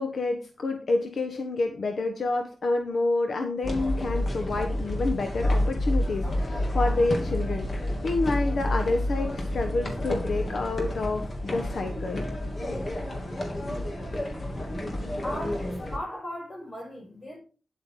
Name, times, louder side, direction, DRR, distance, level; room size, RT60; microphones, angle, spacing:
voice 1, 0.0-12.2, left 2 dB, 70° left, 1.3 m, -28 dB
sound 1, 3.6-16.0, left 1 dB, 45° left, 2.7 m, -29 dB
voice 2, 15.2-17.4, left 1 dB, 30° left, 5.2 m, -37 dB
10.0 x 8.5 x 3.8 m
wide cardioid pair, 125°, 0 cm